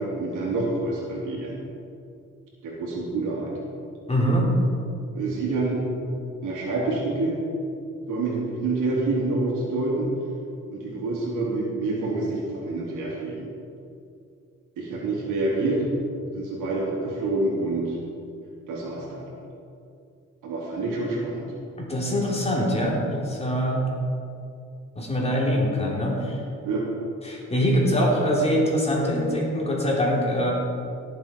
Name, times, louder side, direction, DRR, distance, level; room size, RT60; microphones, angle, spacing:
voice 1, 0.0-1.5 2.6-3.6 5.1-5.8 6.4-7.4 8.1-10.1 10.7-13.5 14.8-15.8 16.3-18.0 18.7-19.3 20.4-21.5 26.6-26.9, right 2 dB, 85° right, -4 dB, 3.4 m, -27 dB
voice 2, 4.1-4.5 21.8-23.8 24.9-26.4 27.2-30.5, equal, 20° left, -3 dB, 3.4 m, -23 dB
17.5 x 7.7 x 4.6 m, 2.5 s
cardioid pair, 90°, 30 cm